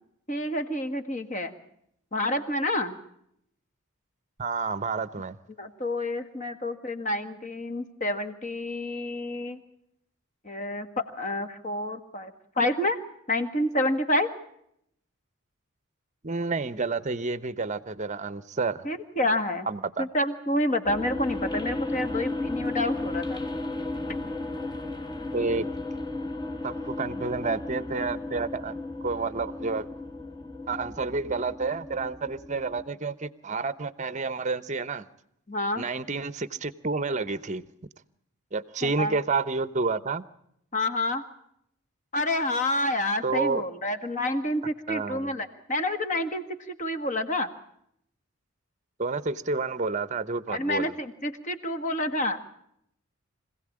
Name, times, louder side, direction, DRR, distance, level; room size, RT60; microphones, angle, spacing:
voice 1, 0.3-1.6 2.1-3.0 5.6-9.6 10.4-13.0 13.3-14.4 18.8-19.7 20.0-23.4 27.1-27.2 35.5-35.9 38.8-39.2 40.7-41.3 42.1-47.5 50.5-52.4, left 1 dB, 35° left, 1.7 m, -28 dB
voice 2, 4.4-5.4 16.2-18.9 19.7-20.1 25.3-25.7 26.6-29.9 30.7-35.1 35.8-37.6 38.5-40.2 43.2-43.6 44.9-45.4 49.0-50.9, right 4 dB, 30° right, 0.8 m, -30 dB
sound 1, 20.8-32.8, left 2 dB, 20° left, 1.3 m, -34 dB
25.5 x 16.5 x 8.7 m
head